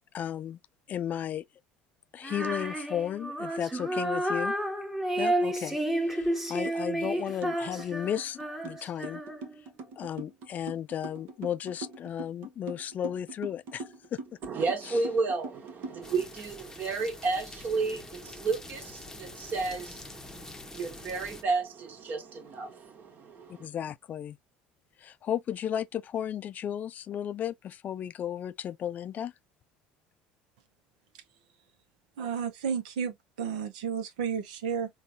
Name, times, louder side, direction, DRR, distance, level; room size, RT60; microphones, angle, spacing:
voice 1, 0.1-0.6 0.9-1.4 2.1-4.5 5.2-9.2 10.0-13.8 14.1-14.2 23.6-24.4 25.0-29.3, left 9 dB, 45° left, 0.3 m, -34 dB
Female singing, 2.2-9.6, right 1 dB, 10° right, 1.0 m, -31 dB
sound 1, 6.7-6.8 7.0-16.2, right 3 dB, 70° right, 1.0 m, -42 dB
voice 2, 14.4-23.7, right 4 dB, 50° right, 1.3 m, -32 dB
sound 2, 16.0-21.4, left 2 dB, 15° left, 0.7 m, -46 dB
voice 3, 32.2-34.9, right 7 dB, 85° right, 0.6 m, -32 dB
3.7 x 2.3 x 2.6 m
hypercardioid pair, 80°, 4 cm